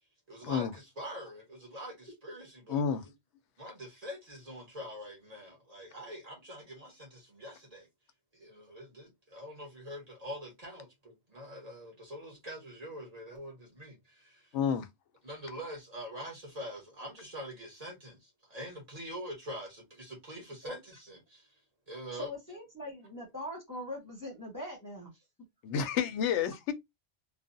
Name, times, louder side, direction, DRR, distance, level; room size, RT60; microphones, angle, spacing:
voice 1, 0.3-2.8 3.6-7.9 8.3-14.6 15.2-21.5 21.9-22.3, equal, 35° right, 1.3 m, -44 dB
voice 2, 2.7-3.0 14.5-14.9 25.6-26.7, left 7 dB, 85° left, 0.9 m, -30 dB
voice 3, 22.1-25.2, left 1 dB, 20° left, 0.9 m, -41 dB
3.1 x 2.1 x 2.6 m
omnidirectional pair, 1.2 m